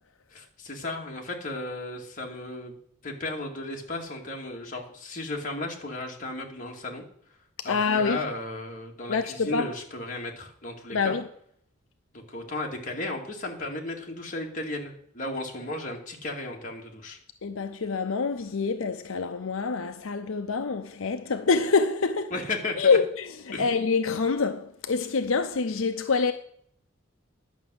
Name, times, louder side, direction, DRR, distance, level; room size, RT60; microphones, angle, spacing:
voice 1, 0.3-2.7 3.0-7.0 7.6-11.1 12.1-17.2 22.3-23.0 23.5-23.7, left 2 dB, 40° left, 2.3 m, -35 dB
voice 2, 7.6-8.2 9.1-9.7 10.9-11.3 17.4-22.3 22.8-26.3, left 4 dB, 85° left, 0.7 m, -26 dB
11.0 x 6.1 x 7.8 m
head